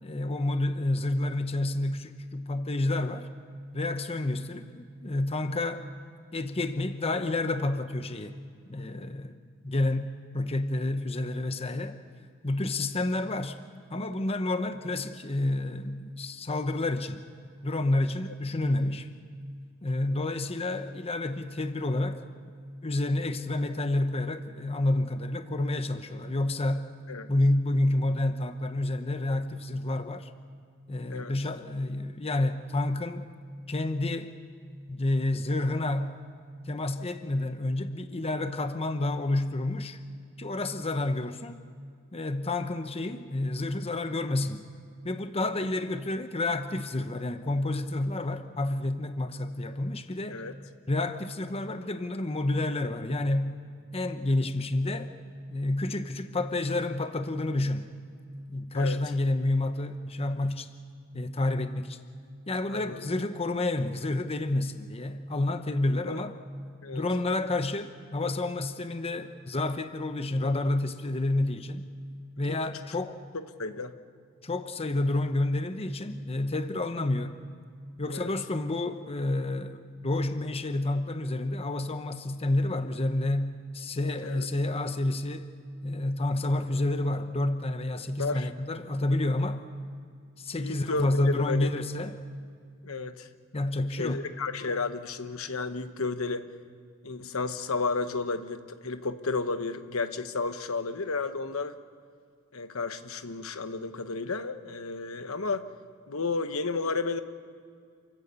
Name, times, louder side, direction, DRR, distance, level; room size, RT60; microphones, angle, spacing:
voice 1, 0.0-3.3 3.7-5.8 6.3-8.4 8.7-9.4 9.6-12.0 12.4-13.6 13.9-17.2 17.6-19.1 19.8-22.2 22.8-26.8 27.3-30.3 30.9-33.3 33.7-34.3 34.9-36.2 36.7-40.0 40.4-41.6 42.1-44.7 45.0-50.4 50.9-53.6 53.9-55.1 55.5-57.9 58.5-60.7 61.1-62.0 62.5-66.3 66.9-71.9 72.4-73.2 74.4-77.4 78.0-85.5 85.8-89.6 90.4-92.2 93.5-94.3, left 2 dB, 30° left, 9 dB, 0.9 m, -29 dB
voice 2, 62.7-63.1 66.0-66.2 66.8-67.1 72.5-72.6 73.3-74.0 78.1-78.3 84.2-84.5 88.2-88.5 90.6-91.7 92.8-93.3 94.0-96.5 97.0-101.8 102.5-105.7 106.1-107.2, left 3 dB, 75° left, 9 dB, 1.1 m, -32 dB
28.0 x 14.0 x 8.2 m, 2.2 s
head